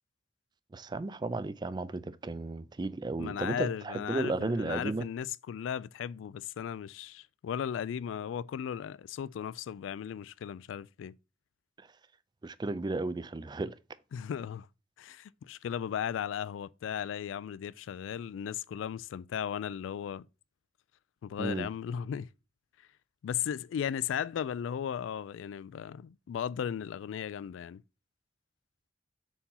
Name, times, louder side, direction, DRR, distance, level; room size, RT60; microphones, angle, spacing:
voice 1, 0.7-5.1 11.8-11.9 12.4-13.7 21.4-21.7, right 2 dB, 25° right, 0.3 m, -34 dB
voice 2, 3.2-11.2 14.1-14.7 15.0-20.3 21.2-22.3 23.2-27.8, left 8 dB, 90° left, 0.3 m, -36 dB
4.6 x 4.2 x 5.5 m
head